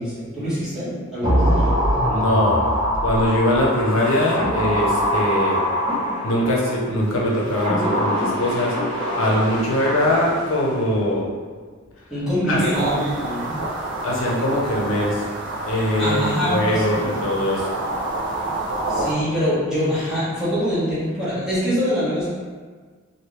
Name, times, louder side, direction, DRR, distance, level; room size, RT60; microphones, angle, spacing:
voice 1, 0.0-1.7 12.1-13.6 16.0-17.1 18.9-22.3, equal, 5° right, -13 dB, 1.3 m, -24 dB
sound 1, 1.2-6.7 7.3-10.6 10.8-10.9, equal, 25° right, 1.0 m, -23 dB
voice 2, 2.1-2.6 3.0-5.6 6.2-8.8 9.2-11.3 12.5-12.6 14.0-15.2 15.7-17.7, left 1 dB, 85° left, -4 dB, 0.7 m, -21 dB
sound 2, 12.7-19.1, right 2 dB, 60° right, 0.6 m, -28 dB
3.0 x 2.6 x 3.1 m, 1.5 s
head